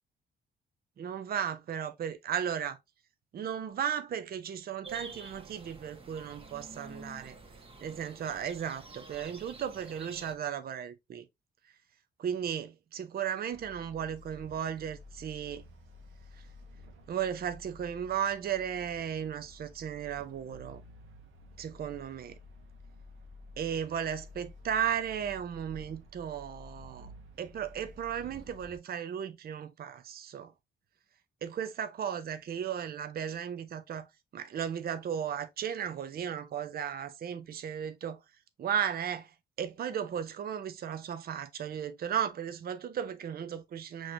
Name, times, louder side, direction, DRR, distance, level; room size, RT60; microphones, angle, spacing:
voice 1, 1.0-2.8 3.3-7.4 7.8-11.2 12.2-15.6 17.1-20.8 21.6-22.4 23.6-27.1 27.4-30.5 31.4-38.2 38.6-44.1, right 8 dB, 50° right, 0.6 m, -35 dB
sound 1, 4.8-10.3, right 3 dB, 30° right, 1.1 m, -49 dB
sound 2, 13.5-28.8, left 1 dB, 85° right, 1.0 m, -52 dB
6.1 x 3.1 x 2.5 m
cardioid pair, 90°, 20 cm